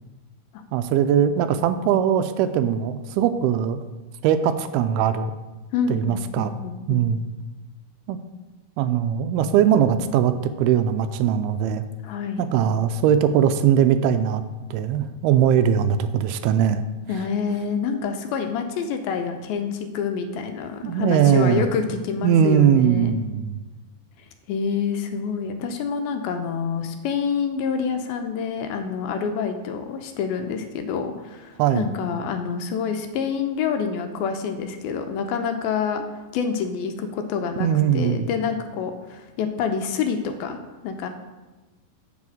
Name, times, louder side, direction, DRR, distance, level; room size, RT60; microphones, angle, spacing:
voice 1, 0.7-3.8 4.2-5.3 5.9-6.5 6.9-7.2 8.1-8.2 8.8-10.3 10.6-11.8 12.4-14.4 14.7-16.8 20.8-21.7 22.2-23.6 31.6-31.9 37.6-38.3, right 9 dB, 85° right, 10 dB, 2.4 m, -20 dB
voice 2, 5.7-7.0 12.0-12.4 17.1-23.2 24.5-36.0 36.3-40.6 40.8-41.1, left 6 dB, 80° left, 6 dB, 2.4 m, -27 dB
9.8 x 4.2 x 7.5 m, 1.2 s
omnidirectional pair, 4.5 m